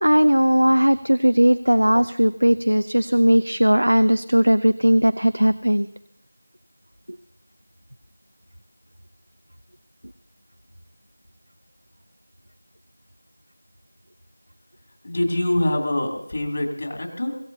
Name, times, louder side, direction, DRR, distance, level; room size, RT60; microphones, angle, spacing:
voice 1, 0.0-5.9, equal, 85° right, 13 dB, 0.6 m, -18 dB
voice 2, 15.0-17.4, left 1 dB, 50° left, 2 dB, 2.9 m, -24 dB
24.5 x 15.0 x 2.8 m, 0.78 s
figure-of-eight pair, 170°, 0 cm